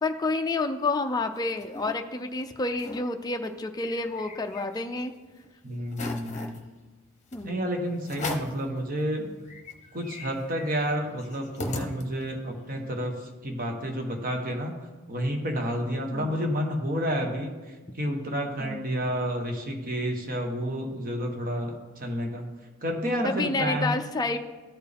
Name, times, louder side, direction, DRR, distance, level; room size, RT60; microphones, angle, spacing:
voice 1, 0.0-5.1 7.3-7.5 16.1-16.4 18.6-18.8 23.2-24.4, left 3 dB, 20° left, 5 dB, 0.4 m, -29 dB
sound 1, 1.1-1.9 2.4-2.5 2.7-3.0 3.4-5.0 5.4-5.5 5.9-6.6 7.3-7.5 8.0-8.6 9.1-9.2 9.4-12.4, left 2 dB, 35° left, 0.8 m, -38 dB
voice 2, 5.6-6.6 7.4-9.3 9.9-14.7 15.1-22.5 22.8-23.9, equal, 40° right, 3 dB, 1.2 m, -30 dB
13.5 x 4.5 x 3.5 m, 1.3 s
head